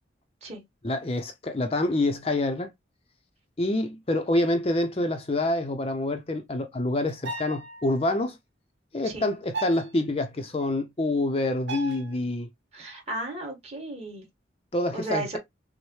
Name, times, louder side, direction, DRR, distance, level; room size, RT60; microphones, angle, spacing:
voice 1, 0.8-2.7 3.6-8.4 8.9-12.5 14.7-15.4, left 2 dB, 30° left, 0.5 m, -27 dB
sound 1, 7.1-7.9 9.5-9.9 11.7-12.1, right 3 dB, 75° right, 0.9 m, -35 dB
voice 2, 12.7-14.2 14.9-15.4, right 2 dB, 35° right, 1.7 m, -34 dB
6.2 x 2.1 x 3.0 m
head